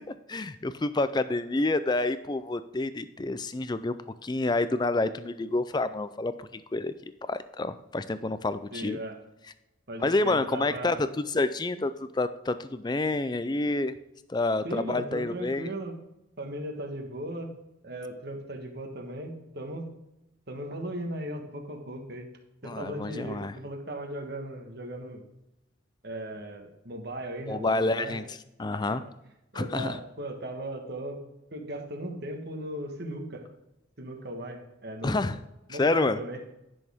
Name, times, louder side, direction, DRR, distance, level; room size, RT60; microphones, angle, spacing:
voice 1, 0.3-4.0 4.2-6.9 7.3-9.0 10.0-13.9 14.3-15.7 22.6-23.6 27.5-29.0 29.5-30.0 35.0-35.4 35.7-36.2, left 2 dB, 20° left, 13 dB, 0.4 m, -28 dB
voice 2, 8.7-9.2 9.9-11.0 14.6-16.0 16.4-17.6 17.8-19.9 20.5-22.3 22.6-25.2 26.0-28.2 28.9-29.0 29.5-31.2 31.5-33.4 34.0-35.3 35.7-36.4, right 1 dB, 50° right, 3 dB, 1.4 m, -37 dB
10.5 x 6.4 x 3.5 m, 0.91 s
head